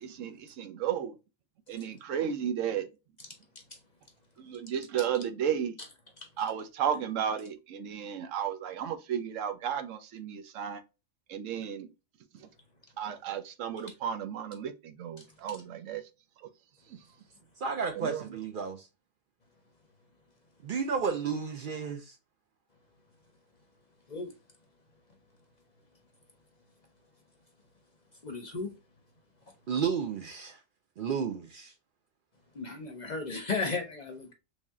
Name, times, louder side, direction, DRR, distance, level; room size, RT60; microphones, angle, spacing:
voice 1, 0.0-1.2 1.7-2.9 4.4-5.8 6.4-10.8 11.3-11.9 13.0-16.0 17.9-18.2, right 8 dB, 90° right, 1.0 m, -33 dB
voice 2, 17.6-18.9 20.6-22.1 29.7-30.6 31.0-31.7, right 6 dB, 60° right, 0.5 m, -32 dB
voice 3, 28.2-28.7 32.5-34.3, left 4 dB, 45° left, 0.6 m, -35 dB
3.4 x 2.7 x 3.4 m
omnidirectional pair, 1.3 m